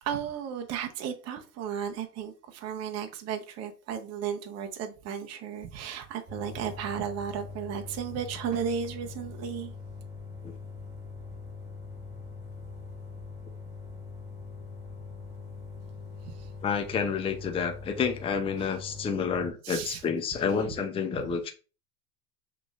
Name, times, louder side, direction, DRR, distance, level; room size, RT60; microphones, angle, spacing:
voice 1, 0.0-9.7 16.2-16.5 18.6-18.7 19.6-20.0, right 8 dB, 35° right, 0.8 m, -34 dB
sound 1, 6.3-19.5, left 4 dB, 5° right, 2.0 m, -42 dB
voice 2, 16.6-21.5, left 6 dB, 10° left, 0.5 m, -29 dB
5.9 x 3.3 x 2.4 m
hypercardioid pair, 100°, 47 cm